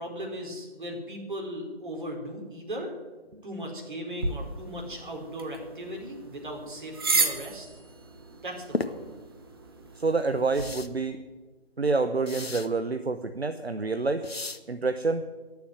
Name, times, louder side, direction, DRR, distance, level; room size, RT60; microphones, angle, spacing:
voice 1, 0.0-2.9 3.4-7.7 8.4-9.2, equal, 50° right, 1 dB, 4.4 m, -37 dB
sound 1, 4.2-10.7, right 3 dB, 25° right, 1.1 m, -34 dB
sound 2, 8.7-8.9 10.5-10.9 12.3-12.7 14.2-14.6, left 3 dB, 70° left, 1.3 m, -33 dB
voice 2, 10.0-11.2 11.8-14.3 14.7-15.2, right 3 dB, 75° right, 9 dB, 1.0 m, -27 dB
18.5 x 7.1 x 9.4 m, 1.2 s
figure-of-eight pair, 155°, 31 cm